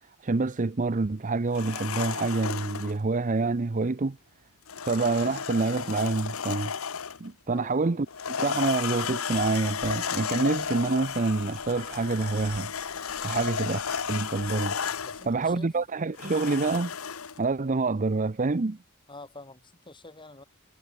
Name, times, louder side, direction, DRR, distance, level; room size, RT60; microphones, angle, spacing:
voice 1, 0.2-4.2 4.8-6.7 7.2-12.7 13.2-14.8 15.3-16.9 17.4-18.8, right 3 dB, 40° right, 0.6 m, -27 dB
sound 1, 1.5-3.0 4.7-7.3 8.1-15.3 16.2-17.4, left 6 dB, 85° left, 1.1 m, -33 dB
voice 2, 7.5-8.0 15.0-15.7 19.1-20.4, left 2 dB, 25° left, 5.8 m, -47 dB
Bird vocalization bird call bird song, 9.3-15.6, right 2 dB, 60° right, 3.1 m, -53 dB
head